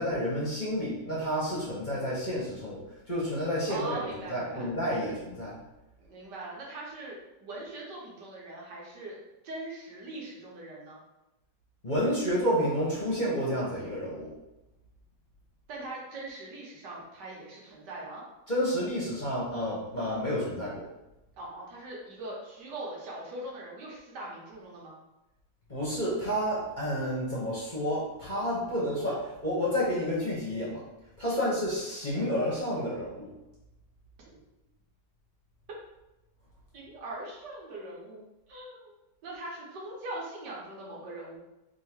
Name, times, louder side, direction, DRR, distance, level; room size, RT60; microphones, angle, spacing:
voice 1, 0.0-5.5 11.8-14.3 18.5-20.8 25.7-30.8 31.2-33.3, equal, 30° left, -7 dB, 1.0 m, -30 dB
voice 2, 3.7-4.7 6.0-9.2 9.4-11.0 15.7-18.2 21.4-25.0 31.3-31.5 34.3-34.4 36.7-38.2 38.5-38.9 39.2-41.4, right 2 dB, 75° right, -3 dB, 1.6 m, -41 dB
3.7 x 2.8 x 4.5 m, 0.95 s
omnidirectional pair, 1.9 m